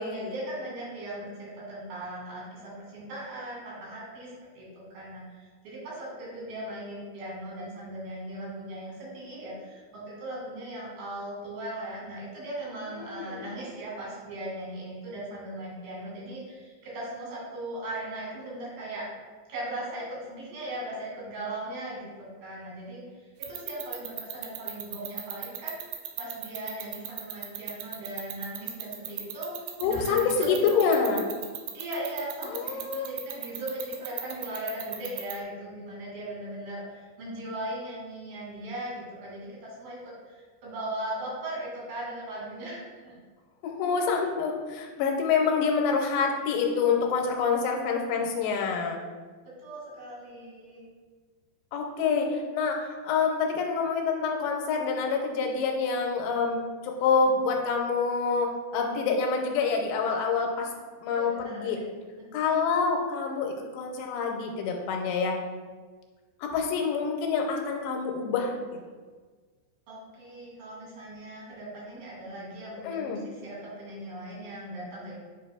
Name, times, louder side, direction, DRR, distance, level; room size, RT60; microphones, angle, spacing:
voice 1, 0.0-19.1 19.5-31.1 31.7-43.2 49.6-50.8 61.1-61.8 69.9-75.2, right 1 dB, 60° right, -6 dB, 3.6 m, -38 dB
voice 2, 13.0-13.4 29.8-31.2 32.4-33.1 43.6-49.0 51.7-60.7 61.0-61.8 62.3-65.4 66.4-68.5 72.8-73.2, left 5 dB, 85° left, 2 dB, 2.7 m, -27 dB
sound 1, 23.4-35.3, right 13 dB, 85° right, 2.8 m, -34 dB
9.3 x 5.5 x 2.2 m, 1.5 s
omnidirectional pair, 5.2 m